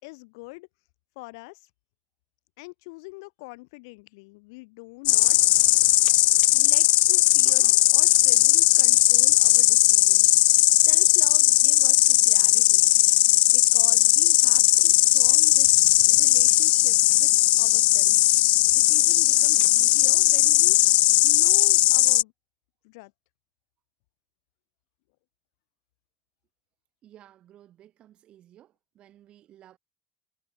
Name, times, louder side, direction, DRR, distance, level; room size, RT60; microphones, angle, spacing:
voice 1, 0.0-0.7 1.1-1.7 2.6-5.4 6.5-12.9 13.2-17.3 17.6-21.0 21.2-22.3 22.8-23.1, left 27 dB, 80° left, 3.3 m, -44 dB
Insect, 5.1-22.2, left 18 dB, 60° left, 0.4 m, -18 dB
voice 2, 27.0-29.8, right 12 dB, 45° right, 7.1 m, -54 dB
supercardioid pair, 115°, 2 cm